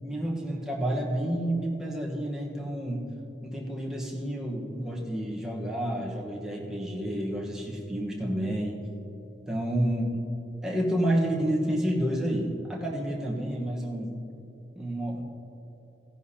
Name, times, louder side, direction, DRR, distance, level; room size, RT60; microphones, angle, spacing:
voice 1, 0.0-3.1 3.4-8.8 9.5-10.2 10.6-14.2 14.7-15.2, right 1 dB, 5° right, -3 dB, 1.2 m, -30 dB
15.5 x 10.0 x 2.8 m, 2.9 s
head